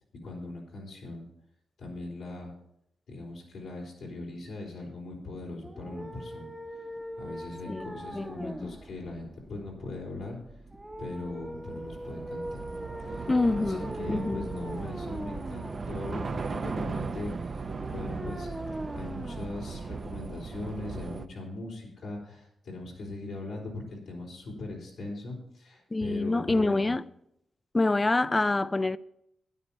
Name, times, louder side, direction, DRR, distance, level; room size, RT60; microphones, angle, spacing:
voice 1, 0.2-1.3 1.8-2.5 3.1-6.5 7.2-10.4 11.0-12.6 13.0-13.3 13.6-17.6 17.9-18.5 18.9-26.9, left 2 dB, 85° left, 4.1 m, -40 dB
sound 1, 5.6-20.6, equal, 10° right, 1.0 m, -42 dB
voice 2, 7.7-8.8 13.3-14.4 25.9-27.0 27.7-29.0, left 2 dB, 25° left, 0.5 m, -27 dB
Train / Subway metro underground, 8.3-21.3, right 4 dB, 50° right, 0.8 m, -38 dB
12.5 x 9.9 x 4.3 m
cardioid pair, 70°, 0 cm